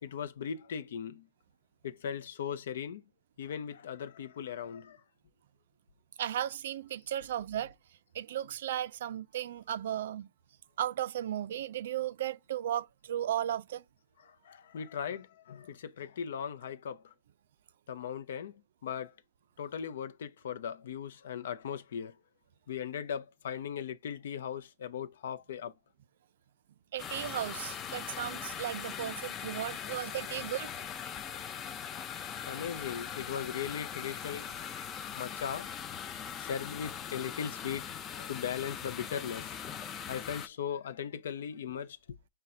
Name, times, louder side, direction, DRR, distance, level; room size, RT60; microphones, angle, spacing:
voice 1, 0.0-1.3 1.8-3.0 3.4-5.0 14.2-17.1 17.9-19.1 19.6-22.1 22.7-25.7 29.3-30.2 31.3-31.4 32.5-34.6 35.2-35.7 36.4-39.6 40.1-42.0, left 8 dB, 80° left, 0.5 m, -38 dB
voice 2, 6.2-7.7 8.1-10.3 10.8-13.8 26.9-30.7, right 11 dB, 70° right, 0.3 m, -35 dB
sound 1, 27.0-40.5, left 8 dB, 20° left, 0.3 m, -41 dB
5.6 x 2.2 x 3.6 m
supercardioid pair, 155°, 0 cm